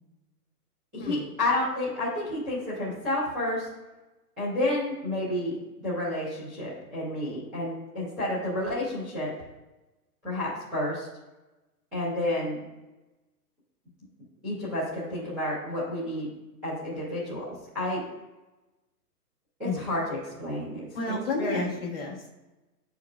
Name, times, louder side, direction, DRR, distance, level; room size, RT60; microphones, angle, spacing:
voice 1, 0.9-3.7 4.4-9.3 10.2-11.1 11.9-12.6 14.4-16.3 16.6-17.4 17.7-18.0 19.6-20.9 21.4-21.6, left 1 dB, 5° right, -20 dB, 0.6 m, -30 dB
voice 2, 20.9-22.3, left 3 dB, 40° left, -1 dB, 1.1 m, -31 dB
9.7 x 4.7 x 2.3 m, 1.1 s
hypercardioid pair, 180°, 47 cm